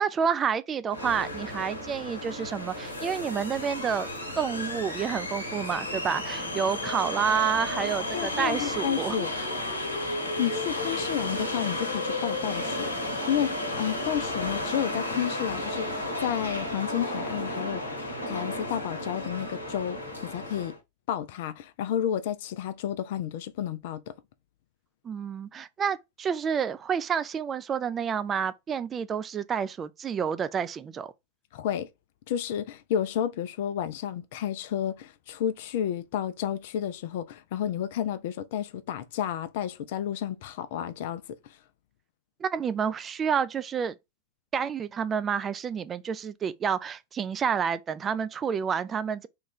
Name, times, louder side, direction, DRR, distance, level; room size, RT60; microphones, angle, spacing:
voice 1, 0.0-4.1 4.4-9.2 25.0-31.1 42.4-43.9 44.5-49.3, right 7 dB, 25° right, 0.3 m, -29 dB
sound 1, 0.9-20.8, left 1 dB, 80° left, 0.9 m, -33 dB
voice 2, 8.1-9.3 10.4-12.9 13.3-17.8 18.3-20.7 21.1-24.1 31.5-31.9 32.3-41.2, left 10 dB, 50° left, 0.4 m, -31 dB
3.0 x 2.3 x 3.6 m
figure-of-eight pair, 90°, 0 cm